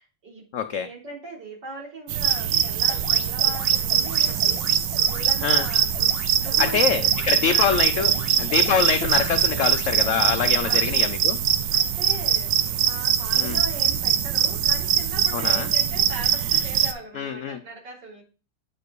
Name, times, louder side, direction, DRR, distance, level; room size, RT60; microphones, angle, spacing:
voice 1, 0.0-0.5 0.7-4.7 5.1-8.2 8.7-8.9 10.6-10.9 11.7-18.2, right 2 dB, 70° right, -3 dB, 4.1 m, -39 dB
voice 2, 0.5-0.9 5.4-5.7 6.6-11.4 13.4-13.6 15.3-15.7 17.1-17.6, left 6 dB, 85° left, 9 dB, 0.6 m, -25 dB
sound 1, 2.1-16.9, right 10 dB, 85° right, 1.4 m, -22 dB
sound 2, 2.8-11.0, left 3 dB, 40° left, 0.9 m, -41 dB
8.8 x 4.6 x 4.7 m, 0.35 s
omnidirectional pair, 1.9 m